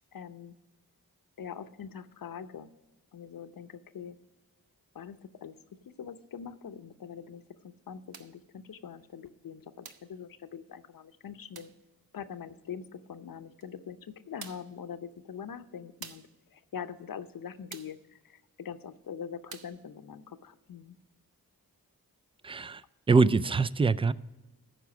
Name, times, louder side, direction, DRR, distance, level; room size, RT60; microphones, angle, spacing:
voice 1, 0.1-0.6 1.4-2.7 3.1-4.2 4.9-11.7 12.1-21.0, left 7 dB, 65° left, 11 dB, 0.7 m, -43 dB
sound 1, 8.1-8.4 9.8-10.1 11.5-11.8 13.6-13.7 14.4-14.8 16.0-16.4 17.7-18.0 19.5-19.8, right 7 dB, 75° right, 0.7 m, -47 dB
voice 2, 22.4-22.8 23.1-24.1, right 4 dB, 15° right, 16 dB, 0.3 m, -23 dB
13.5 x 4.9 x 6.0 m, 1.1 s
cardioid pair, 45°, 37 cm